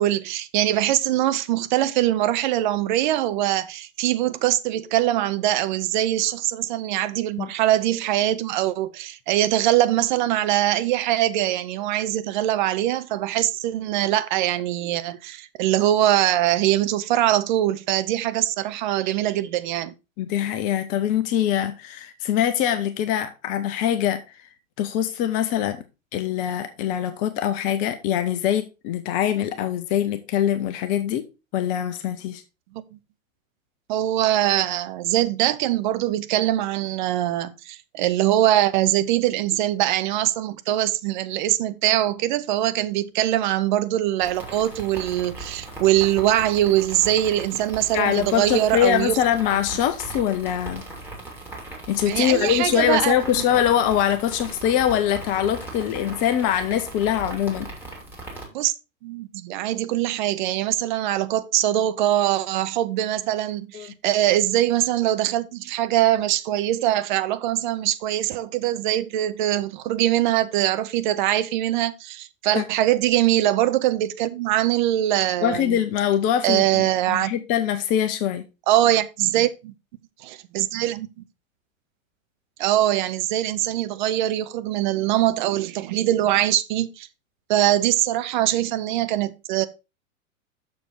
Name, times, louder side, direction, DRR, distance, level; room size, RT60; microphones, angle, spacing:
voice 1, 0.0-19.9 33.9-49.2 52.1-53.2 58.5-58.7 59.0-75.8 76.4-77.3 78.7-79.7 80.2-81.1 82.6-87.1 87.5-89.7, right 13 dB, 35° right, 0.6 m, -22 dB
voice 2, 20.2-24.2 24.8-25.8 26.1-31.2 31.5-32.4 47.9-50.8 51.9-57.7 63.7-63.9 72.5-72.6 75.4-78.4, left 10 dB, 20° left, 0.4 m, -23 dB
sound 1, 44.2-58.4, right 2 dB, 5° right, 2.6 m, -38 dB
6.9 x 6.2 x 4.5 m
figure-of-eight pair, 100°, 41 cm